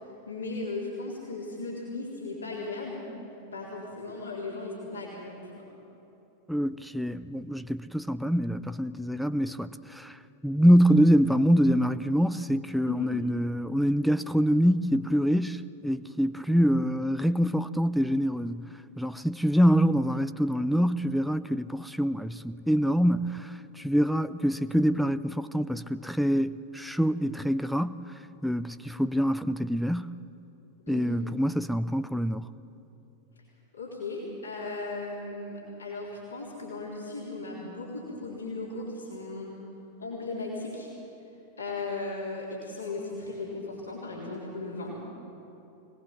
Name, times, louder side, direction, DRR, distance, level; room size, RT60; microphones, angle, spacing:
voice 1, 0.3-3.0 3.5-5.6 12.9-13.1 30.9-31.2 33.7-39.5 40.0-40.9 41.6-44.9, left 3 dB, 75° left, -5 dB, 4.0 m, -37 dB
voice 2, 6.5-18.7 19.0-28.0 28.4-30.1 30.9-32.5, equal, ahead, 12 dB, 0.5 m, -25 dB
23.5 x 19.0 x 7.4 m, 3.0 s
figure-of-eight pair, 90°, 0 cm